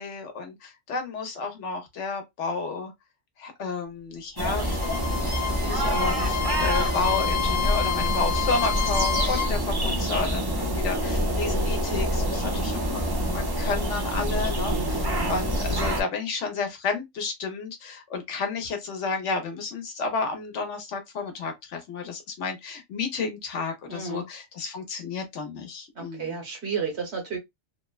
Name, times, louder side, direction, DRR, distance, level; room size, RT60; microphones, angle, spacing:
voice 1, 0.0-2.9 3.4-13.0 13.3-26.3, left 4 dB, 80° left, 1.1 m, -31 dB
sound 1, 4.4-16.0, equal, 35° right, 0.4 m, -26 dB
Bowed string instrument, 4.5-9.5, left 9 dB, 65° left, 0.9 m, -29 dB
voice 2, 14.7-15.0 23.9-24.3 25.9-27.4, right 6 dB, 65° right, 1.3 m, -32 dB
2.9 x 2.1 x 2.3 m
omnidirectional pair, 1.2 m